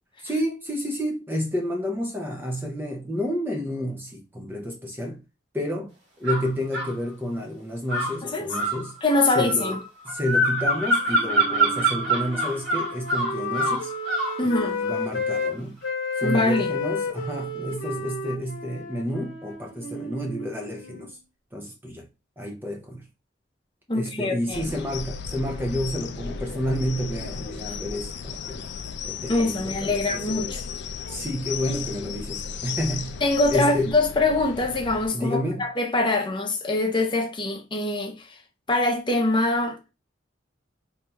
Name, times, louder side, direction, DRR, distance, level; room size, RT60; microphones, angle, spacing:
voice 1, 0.2-5.2 5.5-9.0 9.3-13.9 14.4-15.8 16.2-21.2 21.5-22.1 22.4-23.1 23.9-28.7 29.0-30.5 31.1-33.9 35.1-35.7, equal, 10° right, 0.5 m, -30 dB
sound 1, 6.3-6.9 7.9-14.4, right 2 dB, 70° right, 1.4 m, -25 dB
voice 2, 9.0-9.8 14.4-14.8 16.2-16.7 23.9-24.6 29.3-30.6 33.2-38.4 38.7-39.9, left 2 dB, 25° left, 0.7 m, -24 dB
Wind instrument woodwind instrument, 10.6-15.5 15.8-21.1, left 3 dB, 80° left, 0.9 m, -32 dB
sound 2, 24.5-35.1, left 6 dB, 65° left, 0.3 m, -35 dB
4.3 x 2.8 x 2.3 m
head